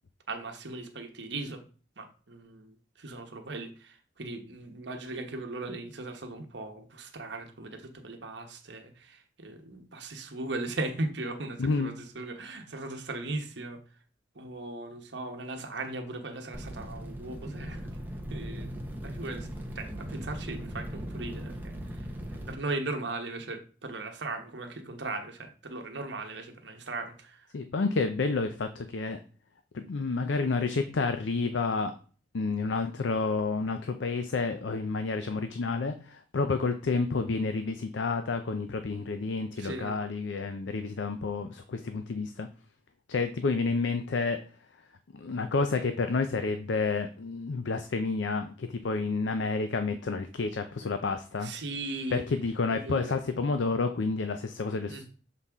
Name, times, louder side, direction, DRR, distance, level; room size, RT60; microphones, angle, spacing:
voice 1, 0.3-1.6 2.0-14.0 14.3-17.9 18.3-19.5 19.7-27.5 39.6-40.0 51.4-52.2 52.7-53.2 54.9-55.0, right 2 dB, 70° right, 5 dB, 1.1 m, -38 dB
voice 2, 11.6-11.9 27.5-29.2 29.7-31.9 32.3-42.5 43.1-44.4 45.1-51.5 52.1-55.0, left 4 dB, 80° left, 8 dB, 0.5 m, -30 dB
sound 1, 16.5-22.5, equal, 10° right, 0.8 m, -39 dB
7.3 x 4.1 x 3.5 m, 0.39 s
head